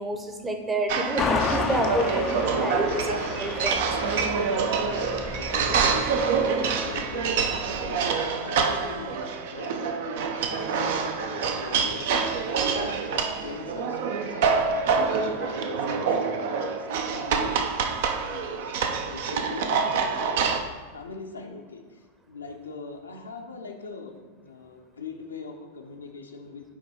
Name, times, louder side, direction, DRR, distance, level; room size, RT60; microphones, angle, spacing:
voice 1, 0.0-4.3, right 1 dB, 15° right, 4 dB, 0.8 m, -29 dB
sound 1, 0.9-20.6, right 5 dB, 55° right, 0.5 m, -26 dB
sound 2, 1.2-8.0, left 6 dB, 25° left, 0.4 m, -33 dB
voice 2, 5.5-17.5 18.2-18.8 19.1-20.4 20.9-26.7, left 4 dB, 75° left, 2 dB, 0.7 m, -41 dB
8.5 x 3.0 x 4.3 m, 1.4 s
figure-of-eight pair, 90°, 0 cm